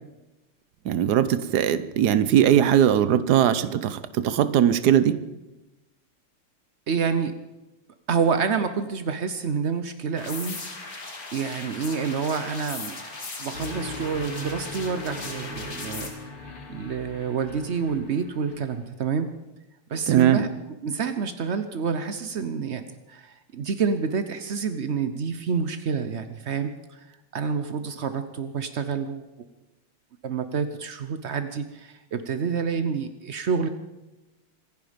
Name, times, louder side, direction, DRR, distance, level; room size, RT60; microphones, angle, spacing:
voice 1, 0.8-5.2 20.1-20.5, right 10 dB, 60° right, 14 dB, 1.2 m, -20 dB
voice 2, 6.9-7.3 8.1-10.6 11.3-13.0 13.4-16.1 16.7-19.3 19.9-20.5 20.8-22.8 23.1-27.0 27.3-29.2 30.2-33.7, right 6 dB, 85° right, 10 dB, 0.6 m, -28 dB
sound 1, 10.2-16.1, left 3 dB, 45° left, 2.7 m, -38 dB
sound 2, 13.5-18.9, left 2 dB, 80° left, 3.2 m, -39 dB
26.0 x 10.5 x 5.2 m, 1.0 s
omnidirectional pair, 2.4 m